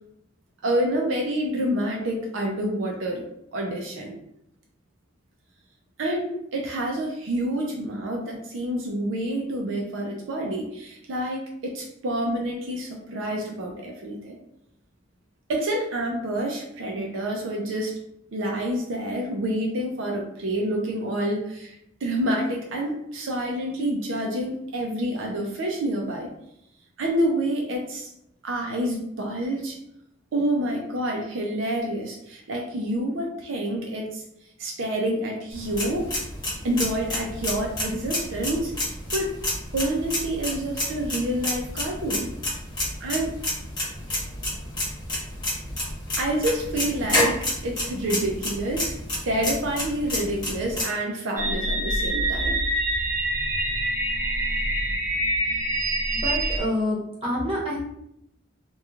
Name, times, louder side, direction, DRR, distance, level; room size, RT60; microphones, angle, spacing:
voice 1, 0.6-3.2 3.5-4.1 6.0-14.4 15.5-17.9 18.3-21.7 22.0-26.3 27.0-28.1 28.4-29.8 30.3-34.2 34.6-36.1 36.6-38.7 39.1-39.3 39.7-42.3 43.0-43.3 46.1-49.0 49.3-52.6, right 1 dB, 75° right, 0 dB, 0.5 m, -28 dB
sound 1, 35.5-50.8, left 1 dB, 25° left, 1.0 m, -30 dB
sound 2, 51.4-56.6, right 1 dB, 10° right, 0.5 m, -25 dB
voice 2, 56.1-57.8, left 1 dB, 30° right, -5 dB, 0.9 m, -27 dB
2.9 x 2.3 x 2.4 m, 0.78 s
head